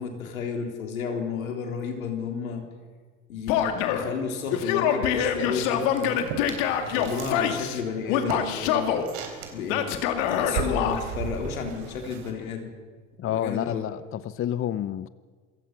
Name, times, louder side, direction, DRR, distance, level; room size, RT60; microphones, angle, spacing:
voice 1, 0.0-2.7 3.3-6.2 6.8-9.1 9.5-10.0 10.3-12.7 13.2-13.8, left 5 dB, 90° left, 3 dB, 3.5 m, -32 dB
Male speech man speaking / Yell, 3.5-4.1 4.5-7.8 8.1-9.1 9.7-11.0, left 9 dB, 65° left, 2.3 m, -25 dB
sound 1, 6.0-7.4 7.7-12.3, right 6 dB, 65° right, 3.9 m, -36 dB
voice 2, 13.2-15.1, left 11 dB, 30° left, 16 dB, 0.7 m, -29 dB
27.0 x 16.0 x 6.0 m, 1.5 s
hypercardioid pair, 85°, 40 cm